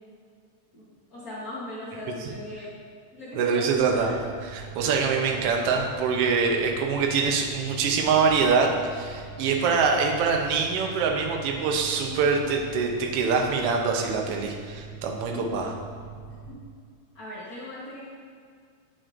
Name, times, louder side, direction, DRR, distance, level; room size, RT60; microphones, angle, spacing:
voice 1, 1.1-2.7 3.1-4.1 5.3-5.5 15.3-15.7 16.5-16.6 17.1-18.0, left 1 dB, 85° left, -9 dB, 0.8 m, -38 dB
voice 2, 3.4-4.2 4.5-15.7, right 5 dB, 80° right, 1 dB, 1.3 m, -24 dB
Mechanical fan, 3.7-16.5, right 5 dB, 65° left, 1.5 m, -43 dB
8.8 x 6.1 x 2.5 m, 2.1 s
omnidirectional pair, 3.5 m